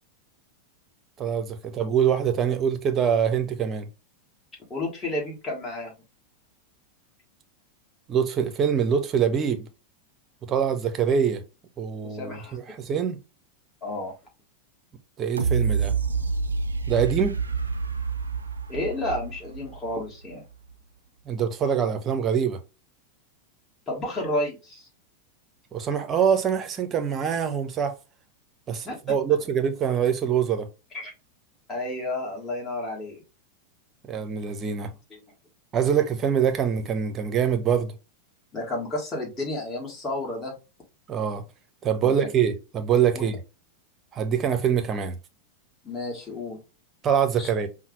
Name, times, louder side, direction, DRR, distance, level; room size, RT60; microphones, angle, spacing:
voice 1, 1.2-3.9 8.1-9.7 10.5-11.4 11.8-13.2 15.2-15.9 16.9-17.4 21.3-22.6 25.7-28.0 28.7-30.7 34.0-34.9 35.7-37.9 41.1-41.4 41.8-43.4 44.1-45.2 47.0-47.7, right 8 dB, 30° right, 0.7 m, -24 dB
voice 2, 4.7-5.9 12.0-12.6 13.8-14.1 18.7-20.4 23.9-24.9 28.9-29.0 30.9-31.1 31.7-33.2 35.1-35.2 38.5-40.5 42.0-42.3 43.1-43.2 45.8-46.6 47.4-47.5, left 1 dB, 20° left, 1.7 m, -31 dB
sound 1, 15.4-20.3 20.7-20.8, right 5 dB, 75° right, 0.4 m, -28 dB
5.5 x 2.1 x 3.1 m
figure-of-eight pair, 90°, 0 cm